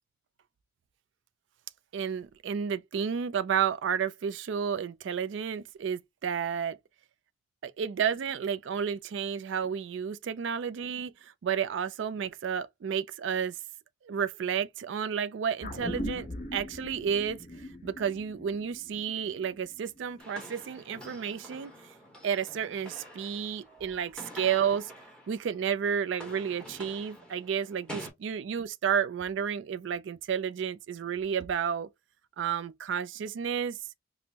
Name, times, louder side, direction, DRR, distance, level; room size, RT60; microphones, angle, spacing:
voice 1, 1.9-6.8 7.6-13.6 14.0-21.7 22.2-24.9 25.3-31.9 32.4-33.8, right 7 dB, 75° right, 0.3 m, -31 dB
sound 1, 15.6-20.2 20.5-20.6, equal, 40° left, 1.0 m, -40 dB
sound 2, 20.2-25.7 25.9-28.1, equal, 5° left, 1.0 m, -47 dB
5.2 x 2.0 x 2.8 m
head